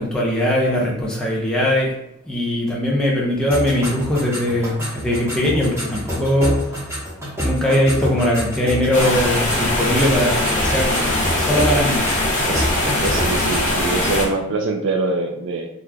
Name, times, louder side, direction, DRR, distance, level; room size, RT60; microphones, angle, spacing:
voice 1, 0.0-2.0 2.3-7.1 7.4-12.0, left 1 dB, 5° left, -5 dB, 0.7 m, -20 dB
sound 1, 3.5-13.8, equal, 10° right, 1.2 m, -28 dB
sound 2, 8.9-14.3, left 1 dB, 35° left, 0.8 m, -21 dB
voice 2, 12.4-15.7, right 3 dB, 60° right, 4 dB, 0.4 m, -24 dB
3.8 x 3.0 x 2.3 m, 0.80 s
head